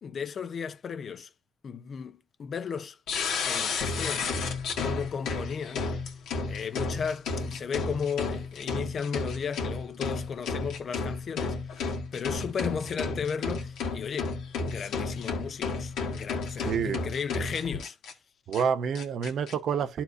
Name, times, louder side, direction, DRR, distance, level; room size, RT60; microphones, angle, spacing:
voice 1, 0.0-1.3 1.6-3.0 3.5-4.3 4.8-5.9 6.5-14.4 14.7-18.0, left 6 dB, 50° left, 0.7 m, -35 dB
sound 1, 3.1-18.1 18.5-18.6 18.9-19.5, left 4 dB, 85° left, 1.6 m, -32 dB
voice 2, 16.6-17.0 18.5-20.0, right 7 dB, 65° right, 0.7 m, -28 dB
12.5 x 4.4 x 2.7 m
cardioid pair, 90°, 0 cm